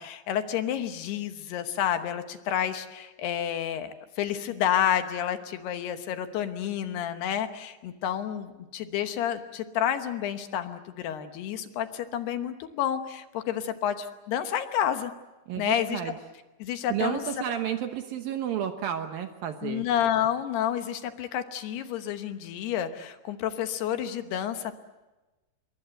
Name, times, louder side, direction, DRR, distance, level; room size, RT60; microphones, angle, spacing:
voice 1, 0.0-15.1 15.6-16.0 16.6-17.2 19.6-24.7, left 10 dB, 70° left, 9 dB, 2.9 m, -30 dB
voice 2, 15.5-16.1 16.9-19.8, right 9 dB, 70° right, 7 dB, 2.4 m, -31 dB
27.5 x 23.0 x 7.9 m, 1.1 s
omnidirectional pair, 5.4 m